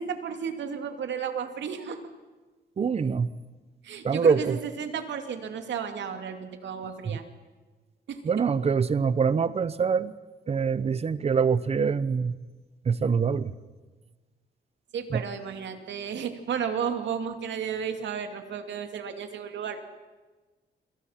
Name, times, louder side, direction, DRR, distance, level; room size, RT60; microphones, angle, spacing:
voice 1, 0.0-2.0 3.8-7.2 8.1-8.2 14.9-19.8, right 7 dB, 75° right, 7 dB, 2.6 m, -33 dB
voice 2, 2.8-3.3 4.0-4.6 7.1-7.2 8.2-10.1 10.5-12.3 12.9-13.5 15.1-15.2, right 6 dB, 35° right, 16 dB, 0.9 m, -24 dB
29.0 x 25.5 x 5.9 m, 1.3 s
wide cardioid pair, 155°, 19 cm